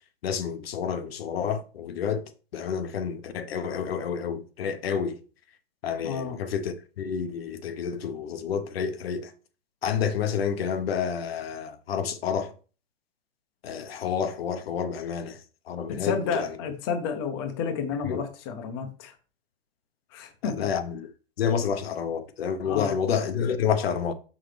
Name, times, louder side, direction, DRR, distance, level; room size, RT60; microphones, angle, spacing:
voice 1, 0.2-2.2 2.5-5.2 5.8-9.3 9.8-12.5 13.6-15.4 15.7-16.5 18.1-18.2 20.4-21.1 21.4-24.1, left 7 dB, 80° left, 1.0 m, -29 dB
voice 2, 6.0-6.4 15.9-19.1 20.1-20.7 22.6-23.0, left 6 dB, 25° left, 0.7 m, -31 dB
6.1 x 5.9 x 3.3 m
supercardioid pair, 175°, 30 cm